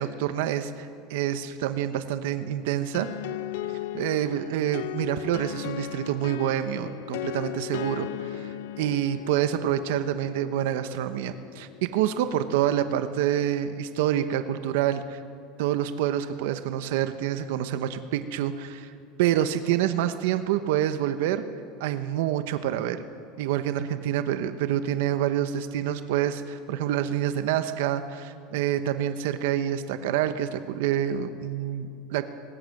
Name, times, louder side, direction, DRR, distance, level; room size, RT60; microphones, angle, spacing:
voice 1, 0.0-3.1 3.9-15.2 15.6-18.9 19.2-21.4 21.8-23.0 23.4-32.3, right 11 dB, 75° right, 10 dB, 1.0 m, -27 dB
sound 1, 2.9-12.5, left 12 dB, 85° left, 0.7 m, -37 dB
20.0 x 18.0 x 7.7 m, 2.4 s
supercardioid pair, 160°, 0 cm